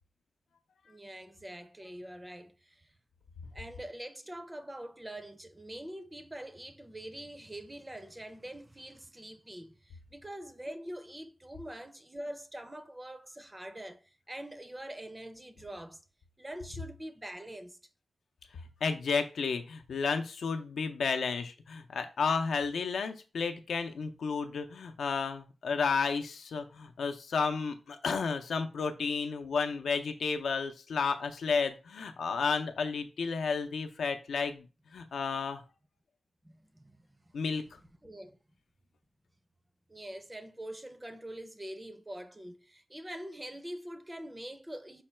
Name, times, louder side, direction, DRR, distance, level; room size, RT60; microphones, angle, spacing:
voice 1, 0.9-2.9 3.5-16.0 16.4-17.8 36.4-37.2 38.0-38.4 39.9-45.0, right 1 dB, 10° right, 0.4 m, -44 dB
voice 2, 18.8-34.6 34.9-35.6 37.3-37.6, left 5 dB, 85° left, 0.6 m, -32 dB
5.5 x 2.2 x 4.3 m
wide cardioid pair, 175°, 0 cm